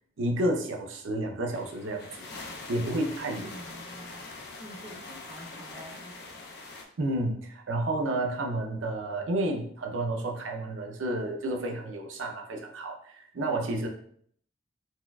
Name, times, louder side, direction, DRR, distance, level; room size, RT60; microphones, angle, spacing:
voice 1, 0.2-2.1 2.7-3.5 7.0-13.9, right 1 dB, 85° right, 3 dB, 0.5 m, -30 dB
sound 1, 1.5-6.8, left 3 dB, 55° left, 0.5 m, -43 dB
voice 2, 3.3-4.2 4.6-6.1, equal, 15° right, -1 dB, 0.4 m, -47 dB
4.2 x 2.3 x 2.2 m, 0.63 s
head